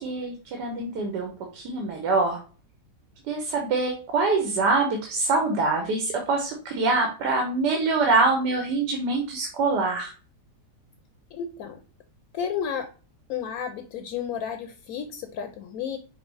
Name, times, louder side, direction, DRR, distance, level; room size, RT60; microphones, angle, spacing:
voice 1, 0.0-2.4 3.3-10.1, right 3 dB, 85° right, 3 dB, 1.4 m, -25 dB
voice 2, 11.3-11.8 12.3-12.9 13.3-16.0, left 8 dB, 70° left, 5 dB, 0.9 m, -32 dB
5.7 x 2.1 x 3.9 m, 0.37 s
omnidirectional pair, 1.8 m